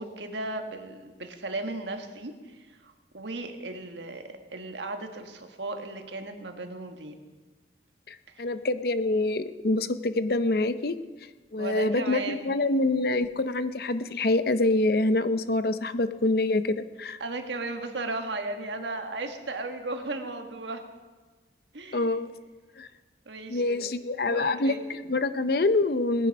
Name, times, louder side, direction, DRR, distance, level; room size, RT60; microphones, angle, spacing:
voice 1, 0.0-7.2 8.3-8.4 11.5-12.6 17.2-20.8 21.7-22.2 23.2-24.8, right 2 dB, 80° right, 5 dB, 1.5 m, -36 dB
voice 2, 8.1-11.0 11.5-17.2 21.9-22.3 22.8-22.9 23.5-26.3, left 2 dB, 55° left, 12 dB, 0.6 m, -26 dB
18.5 x 10.0 x 5.2 m, 1.3 s
head